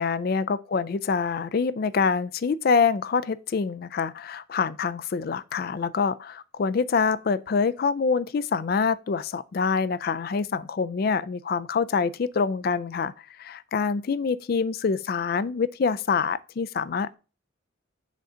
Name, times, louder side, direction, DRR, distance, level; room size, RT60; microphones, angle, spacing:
voice 1, 0.0-13.1 13.4-17.1, left 5 dB, 50° left, 0.3 m, -26 dB
5.1 x 3.8 x 5.5 m
head